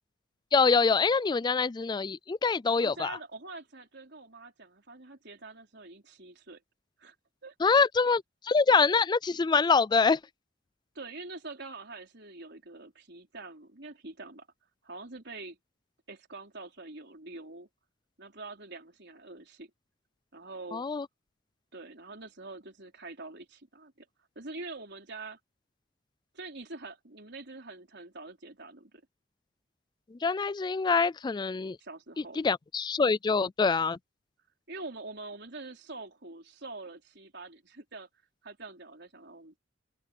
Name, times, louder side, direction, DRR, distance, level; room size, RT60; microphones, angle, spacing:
voice 1, 0.5-3.1 7.6-10.2 20.7-21.1 30.2-31.8 32.4-34.0, left 4 dB, 20° left, 0.3 m, -25 dB
voice 2, 2.6-6.6 7.0-7.1 7.4-7.8 10.9-14.5 14.8-15.6 16.1-17.7 18.2-19.7 20.3-20.8 21.7-24.1 24.3-25.4 26.3-29.0 31.8-32.4 34.7-38.1 38.4-39.6, right 3 dB, 60° right, 4.7 m, -45 dB
open air
head